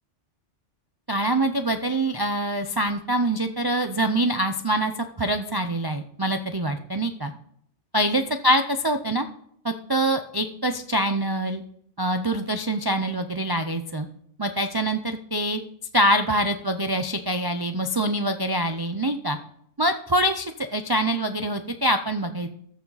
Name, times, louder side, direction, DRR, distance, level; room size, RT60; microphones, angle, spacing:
voice 1, 1.1-7.3 7.9-9.3 9.6-11.6 12.0-14.1 14.4-15.6 15.9-19.4 19.8-22.5, right 1 dB, 30° right, 6 dB, 0.5 m, -25 dB
14.0 x 7.2 x 4.1 m, 0.66 s
omnidirectional pair, 1.2 m